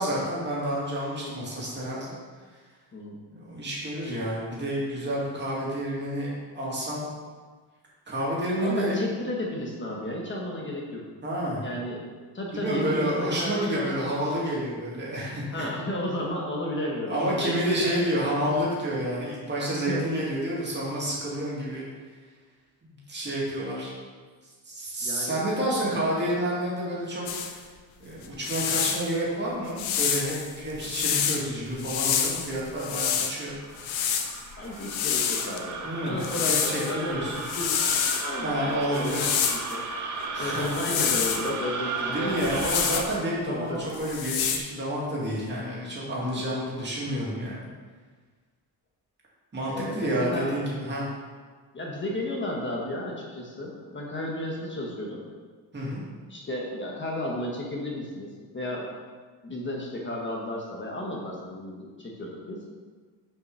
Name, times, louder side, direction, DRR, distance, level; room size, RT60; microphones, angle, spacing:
voice 1, 0.0-2.2 3.3-7.0 8.1-9.0 11.2-11.6 12.5-15.7 17.1-21.8 22.8-23.9 24.6-27.6 28.0-33.6 35.8-37.4 38.4-39.3 40.3-40.7 42.1-47.6 49.5-51.0 55.7-56.0, right 1 dB, 25° right, -6 dB, 2.4 m, -29 dB
voice 2, 8.6-11.0 11.6-12.1 12.3-14.1 15.5-18.3 19.7-20.2 25.0-25.5 34.6-39.8 40.4-42.4 43.5-43.9 46.2-46.5 49.7-50.5 51.7-55.2 56.3-58.9 59.4-62.6, left 1 dB, 25° left, -2 dB, 1.1 m, -33 dB
sound 1, 27.3-27.5 28.2-29.1 29.8-31.4 31.8-33.3 33.8-35.6 36.2-36.9 37.3-38.3 38.9-39.7 40.6-41.5 42.4-43.2 43.9-44.6, left 8 dB, 90° left, 0.9 m, -27 dB
sound 2, 33.1-43.0, right 3 dB, 40° right, 1.0 m, -35 dB
6.5 x 5.2 x 5.5 m, 1.5 s
cardioid pair, 155°, 45 cm